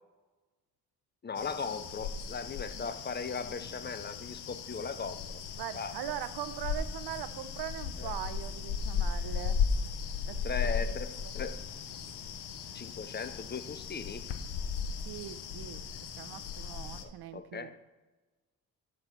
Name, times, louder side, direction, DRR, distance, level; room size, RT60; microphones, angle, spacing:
voice 1, 1.2-5.2 5.7-5.9 8.0-8.1 10.4-11.6 12.7-14.3 17.0-17.8, left 5 dB, 25° left, 12 dB, 0.5 m, -38 dB
sound 1, 1.4-17.0, left 6 dB, 85° left, 0.8 m, -36 dB
voice 2, 5.6-9.6 10.2-10.4 10.8-10.9 11.2-11.3 15.0-15.8 16.2-17.8, right 11 dB, 80° right, 13 dB, 0.7 m, -41 dB
10.0 x 4.4 x 6.7 m, 1.2 s
cardioid pair, 110°, 38 cm